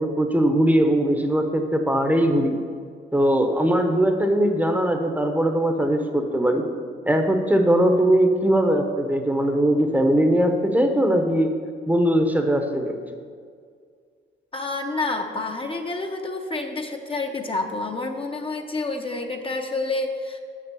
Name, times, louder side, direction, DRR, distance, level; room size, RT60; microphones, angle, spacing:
voice 1, 0.0-2.6 3.1-6.7 7.0-11.5 11.9-13.0, right 1 dB, 10° right, 4 dB, 0.9 m, -20 dB
voice 2, 14.5-20.4, left 2 dB, 25° left, 3 dB, 0.8 m, -28 dB
7.4 x 5.9 x 6.9 m, 2.1 s
cardioid pair, 90°, 20 cm